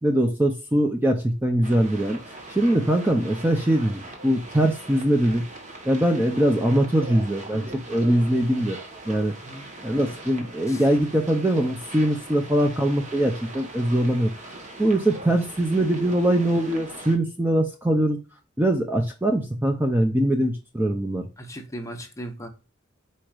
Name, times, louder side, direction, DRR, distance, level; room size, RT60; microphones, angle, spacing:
voice 1, 0.0-2.2 2.5-5.4 5.9-8.8 9.1-9.3 9.8-14.3 14.8-18.2 18.6-21.3, right 1 dB, 10° right, 0.5 m, -22 dB
sound 1, 1.6-17.2, right 2 dB, 40° right, 1.3 m, -41 dB
voice 2, 21.4-22.5, right 1 dB, 15° left, 0.9 m, -37 dB
4.6 x 4.4 x 2.4 m
head